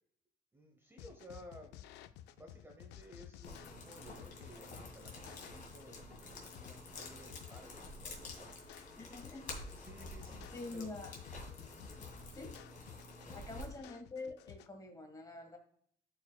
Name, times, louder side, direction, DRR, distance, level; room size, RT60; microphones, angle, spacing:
voice 1, 0.5-1.8 2.1-9.1 9.7-10.9 11.6-12.1 13.3-13.7, equal, 15° right, 3 dB, 0.9 m, -57 dB
sound 1, 1.0-14.7, left 11 dB, 80° left, 0.4 m, -55 dB
sound 2, 3.4-13.7, left 2 dB, 50° left, 2.1 m, -49 dB
voice 2, 9.0-9.6 10.5-11.1 12.3-12.6 13.3-15.6, left 2 dB, 20° left, 4 dB, 1.5 m, -46 dB
11.0 x 4.8 x 2.3 m, 0.66 s
cardioid pair, 110°, 17 cm